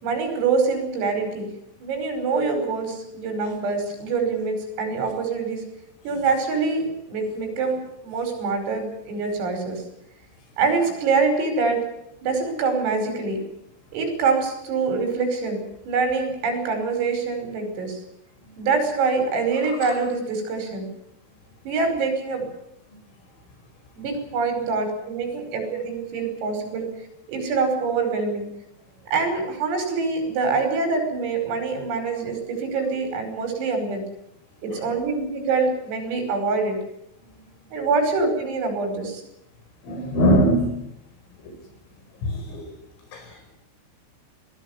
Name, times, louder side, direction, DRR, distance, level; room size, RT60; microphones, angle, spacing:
voice 1, 0.0-1.5 1.8-5.6 6.0-9.8 10.6-11.8 12.2-13.4 13.9-18.0 18.6-20.9 21.7-22.5 24.0-26.9 27.3-28.5 29.1-34.0 34.6-36.8 37.7-39.2, right 4 dB, 80° right, 5 dB, 7.8 m, -25 dB
voice 2, 39.8-40.8 41.4-41.5 42.2-42.6 43.1-43.3, right 1 dB, 75° left, 5 dB, 7.6 m, -21 dB
21.5 x 16.5 x 9.8 m, 0.81 s
omnidirectional pair, 5.9 m